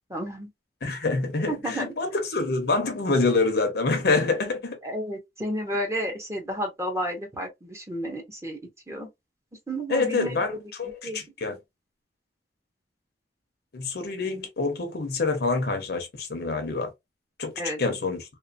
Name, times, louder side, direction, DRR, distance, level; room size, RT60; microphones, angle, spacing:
voice 1, 0.1-0.5 1.5-1.9 4.8-8.6 8.9-9.1 9.7-10.4 11.0-11.2 17.6-17.8, equal, 15° right, 0.9 m, -31 dB
voice 2, 0.8-4.8 9.9-11.6 13.7-16.9 17.4-17.5 17.8-18.2, left 3 dB, 65° left, 0.8 m, -26 dB
2.9 x 2.0 x 2.5 m
head